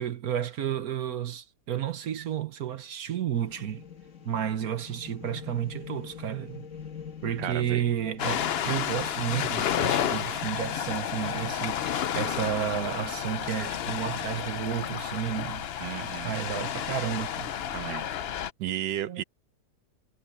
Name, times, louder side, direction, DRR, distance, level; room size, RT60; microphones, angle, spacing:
voice 1, 0.0-3.8 4.2-6.7 7.2-15.7 16.0-17.5 19.1-19.2, right 9 dB, 60° right, 1.4 m, -32 dB
sound 1, 3.3-14.1, left 7 dB, 45° left, 1.8 m, -45 dB
voice 2, 7.4-7.8 15.8-16.3 17.7-18.0 18.6-19.2, right 12 dB, 80° right, 1.4 m, -33 dB
Ocean, 8.2-18.5, left 9 dB, 75° left, 0.5 m, -31 dB
omnidirectional pair, 1.9 m